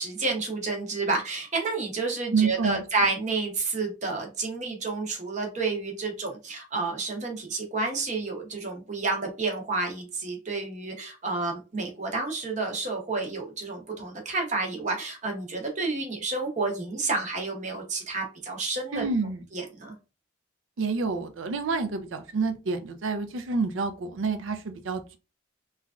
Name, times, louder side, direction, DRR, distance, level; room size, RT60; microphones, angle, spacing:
voice 1, 0.0-19.1 19.5-19.9, right 3 dB, 35° right, 2 dB, 0.8 m, -30 dB
voice 2, 2.3-2.8 18.9-19.4 20.8-25.2, right 4 dB, 75° right, 8 dB, 0.4 m, -28 dB
3.1 x 2.3 x 2.4 m, 0.30 s
head